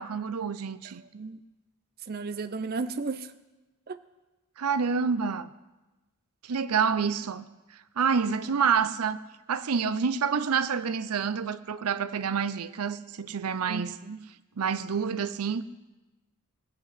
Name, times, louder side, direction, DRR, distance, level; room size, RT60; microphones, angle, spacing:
voice 1, 0.0-1.0 4.6-5.5 6.4-7.5 8.0-9.2 9.5-13.9 14.6-15.6, right 6 dB, 85° right, 0.6 m, -28 dB
voice 2, 0.8-1.4 2.0-3.3 3.9-4.0 13.7-14.2, right 4 dB, 45° right, 0.5 m, -34 dB
20.5 x 7.8 x 6.5 m
head